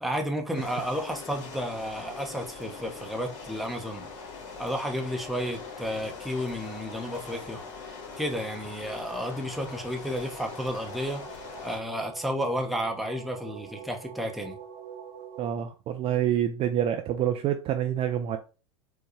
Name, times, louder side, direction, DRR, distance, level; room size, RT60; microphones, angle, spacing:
voice 1, 0.0-4.1 4.6-7.6 8.2-11.2 11.6-14.6, equal, ahead, 0.8 m, -32 dB
sound 1, 0.5-11.8, left 4 dB, 50° left, 1.4 m, -42 dB
sound 2, 9.2-15.5, right 7 dB, 55° right, 0.9 m, -46 dB
voice 2, 15.4-18.4, right 10 dB, 35° right, 0.4 m, -27 dB
4.5 x 2.2 x 3.1 m
hypercardioid pair, 90°, 17 cm